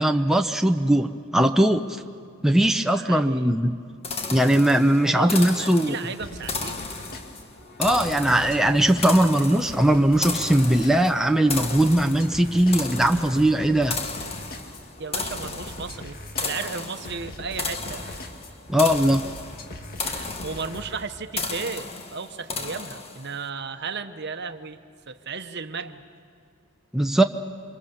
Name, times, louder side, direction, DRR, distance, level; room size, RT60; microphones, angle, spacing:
voice 1, 0.0-1.9 2.4-3.7 4.3-6.0 7.8-14.0 18.7-19.2 26.9-27.2, right 1 dB, ahead, 5 dB, 0.7 m, -20 dB
voice 2, 2.9-3.6 5.0-6.9 15.0-18.2 20.0-26.0, right 5 dB, 55° right, 9 dB, 1.1 m, -35 dB
sound 1, 4.0-23.4, left 4 dB, 30° left, 1.4 m, -34 dB
sound 2, 6.2-21.0, left 1 dB, 45° left, 2.0 m, -41 dB
28.5 x 26.0 x 7.1 m, 2.4 s
head